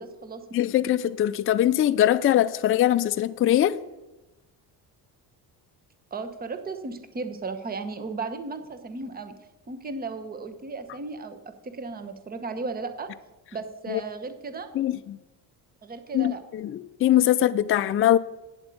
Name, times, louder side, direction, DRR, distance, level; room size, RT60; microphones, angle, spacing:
voice 1, 0.0-0.4 6.1-9.3 9.7-11.4 11.6-13.1 13.5-14.7 15.8-16.4, right 4 dB, 25° right, 1.0 m, -35 dB
voice 2, 0.5-3.8 13.9-14.0 14.8-15.2 16.1-18.2, left 12 dB, 35° left, 0.4 m, -22 dB
8.8 x 7.9 x 8.4 m
cardioid pair, 135°, 39 cm